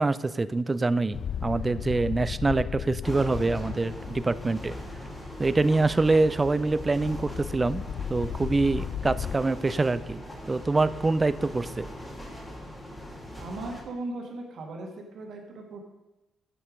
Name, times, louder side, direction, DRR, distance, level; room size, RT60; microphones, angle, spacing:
voice 1, 0.0-4.8 5.4-7.8 8.1-10.2 10.5-11.9, right 3 dB, 25° right, 16 dB, 0.4 m, -25 dB
sound 1, 1.1-9.4, left 8 dB, 60° left, 0.3 m, -36 dB
sound 2, 3.0-13.8, left 1 dB, 10° left, 2.1 m, -40 dB
voice 2, 13.4-15.8, right 2 dB, 65° right, 2 dB, 1.9 m, -38 dB
8.5 x 7.0 x 5.1 m, 1.0 s
cardioid pair, 90°, 0 cm